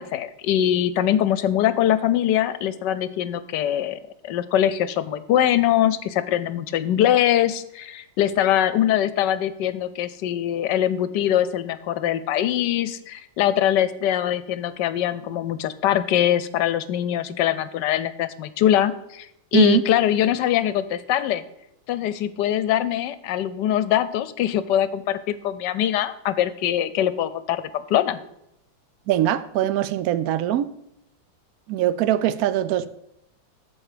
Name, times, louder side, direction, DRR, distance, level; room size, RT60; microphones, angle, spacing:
voice 1, 0.0-21.4 21.9-28.2, left 11 dB, 75° left, 14 dB, 1.2 m, -22 dB
voice 2, 29.1-30.7 31.7-32.9, right 12 dB, 70° right, 14 dB, 0.9 m, -21 dB
14.0 x 4.8 x 5.0 m, 0.79 s
omnidirectional pair, 2.0 m